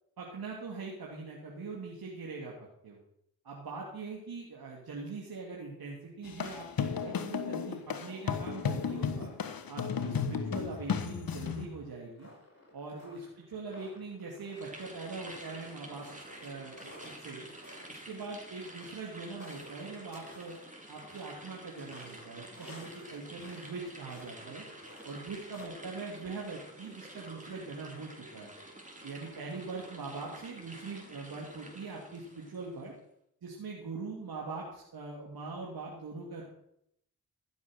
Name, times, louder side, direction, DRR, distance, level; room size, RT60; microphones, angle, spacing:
voice 1, 0.2-2.5 2.8-3.0 3.4-9.3 9.7-12.3 12.7-16.0 16.4-16.9 17.2-17.5 17.9-20.6 20.9-24.6 25.0-28.5 29.0-32.9 33.4-36.4, right 4 dB, 65° right, -2 dB, 2.8 m, -42 dB
sound 1, 6.2-11.6, left 6 dB, 65° left, 1.4 m, -34 dB
sound 2, 9.2-10.3 10.6-16.5 16.7-23.8 24.0-24.3 24.7-25.7, left 1 dB, 40° left, 6.4 m, -55 dB
sound 3, 14.6-32.8, right 1 dB, 20° right, 4.1 m, -49 dB
14.5 x 7.2 x 6.6 m, 0.73 s
supercardioid pair, 40°, 39 cm